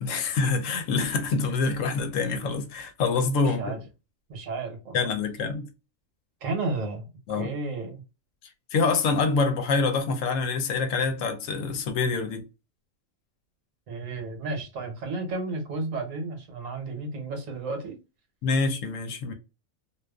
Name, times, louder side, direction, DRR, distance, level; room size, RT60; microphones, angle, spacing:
voice 1, 0.0-3.8 4.9-5.7 7.3-7.6 8.7-12.4 18.4-19.3, left 4 dB, 70° left, 0.9 m, -26 dB
voice 2, 3.4-3.8 4.3-5.0 6.4-7.1 7.4-8.0 13.9-18.0, right 3 dB, 70° right, 1.1 m, -32 dB
2.4 x 2.3 x 2.2 m
omnidirectional pair, 1.4 m